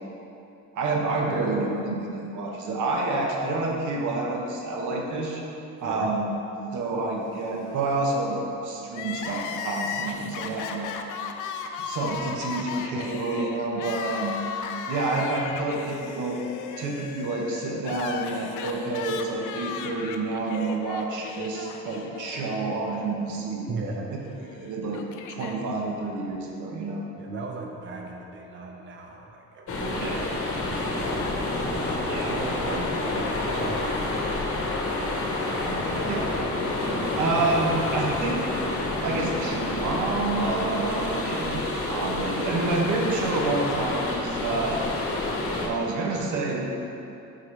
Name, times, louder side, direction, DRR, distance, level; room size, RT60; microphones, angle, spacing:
voice 1, 0.7-5.4 5.8-6.3 6.7-10.9 11.8-14.4 14.9-16.4 16.8-23.7 24.1-24.2 24.5-25.0 25.3-27.1 29.9-30.2 32.1-32.3 36.0-36.3 37.2-38.4 38.9-44.8 45.6-46.7, right 3 dB, 80° right, 0 dB, 0.9 m, -28 dB
Crying sobbing, 8.9-23.1 23.3-23.4 24.4-25.6, left 6 dB, 85° left, 0.5 m, -36 dB
voice 2, 9.9-10.3 23.7-24.2 27.2-30.2 31.8-32.0 32.3-34.4 35.5-36.2 36.7-37.2, right 3 dB, 40° right, 0 dB, 0.7 m, -38 dB
sound 1, 29.7-45.7, left 2 dB, 50° left, 1.1 m, -28 dB
8.3 x 3.9 x 3.2 m, 2.8 s
cardioid pair, 90°, 30 cm